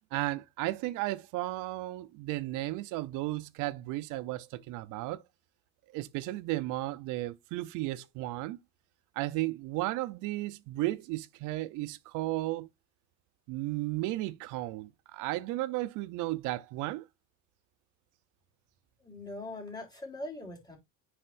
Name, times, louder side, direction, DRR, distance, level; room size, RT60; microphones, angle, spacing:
voice 1, 0.1-5.2 5.9-8.6 9.2-12.7 13.5-17.1, right 18 dB, 80° right, 0.7 m, -34 dB
voice 2, 19.0-20.8, left 2 dB, 15° left, 3.5 m, -41 dB
10.0 x 4.3 x 2.6 m
cardioid pair, 115°, 30 cm